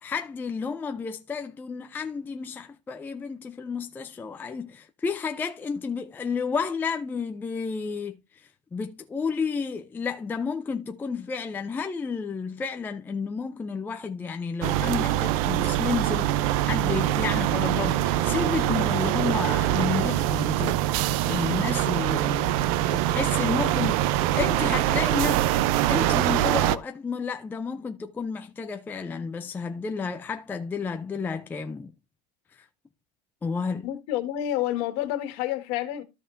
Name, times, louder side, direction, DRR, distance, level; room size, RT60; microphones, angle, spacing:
voice 1, 0.0-8.2 8.7-16.3 16.6-20.8 21.3-22.5 22.9-25.5 25.9-31.9 33.4-33.9, left 5 dB, 10° left, 0.4 m, -31 dB
sound 1, 14.6-26.8, right 13 dB, 55° right, 0.6 m, -24 dB
voice 2, 33.8-36.0, left 13 dB, 55° left, 1.8 m, -29 dB
13.5 x 5.4 x 2.6 m
supercardioid pair, 155°, 21 cm